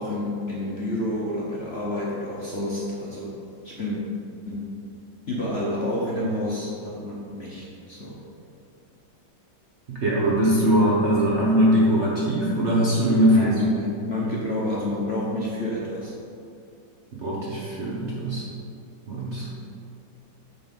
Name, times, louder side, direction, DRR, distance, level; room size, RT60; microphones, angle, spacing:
voice 1, 0.0-4.0 4.5-4.7 5.3-8.2 13.3-16.1, left 1 dB, 45° left, -5 dB, 0.8 m, -29 dB
voice 2, 10.0-13.5 17.1-18.4 19.1-19.5, equal, 50° right, -5 dB, 0.9 m, -21 dB
8.1 x 4.0 x 5.3 m, 2.6 s
omnidirectional pair, 2.1 m